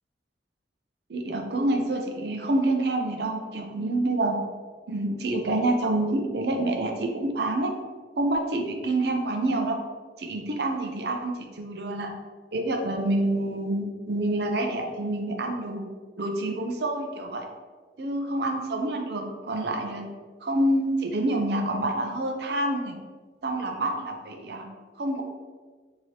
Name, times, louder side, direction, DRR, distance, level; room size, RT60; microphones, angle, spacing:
voice 1, 1.1-4.4 4.9-7.7 8.2-9.8 10.2-12.1 12.5-15.9 16.2-17.5 18.0-20.1 20.4-22.9 23.4-24.7 25.0-25.2, right 1 dB, 60° right, 3 dB, 0.5 m, -27 dB
4.7 x 2.8 x 2.8 m, 1.5 s
head